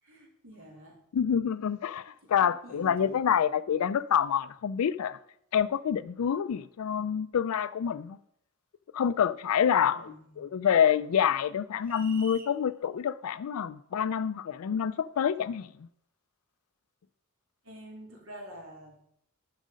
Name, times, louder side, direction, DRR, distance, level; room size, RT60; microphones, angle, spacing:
voice 1, 0.0-1.0 2.2-3.2 9.8-10.5 17.6-19.1, right 1 dB, 65° right, 3.1 m, -48 dB
voice 2, 1.1-5.2 5.5-8.2 8.9-15.7, left 8 dB, 80° left, 0.4 m, -27 dB
sound 1, 11.9-12.6, right 6 dB, 40° right, 0.6 m, -47 dB
10.0 x 6.5 x 5.1 m
head